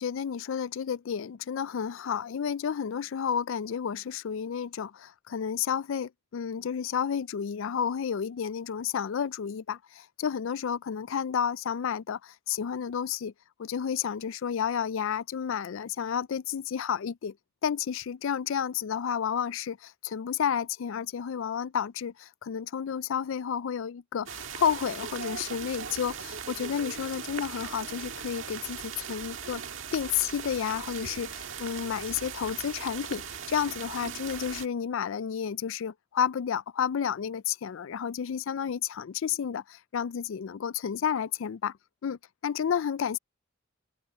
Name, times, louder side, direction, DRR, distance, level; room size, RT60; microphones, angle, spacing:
voice 1, 0.0-13.3 13.6-17.3 17.6-29.6 29.9-41.8 42.0-43.2, left 8 dB, 65° left, 0.4 m, -31 dB
sound 1, 24.3-34.7, right 7 dB, 65° right, 1.8 m, -39 dB
open air
head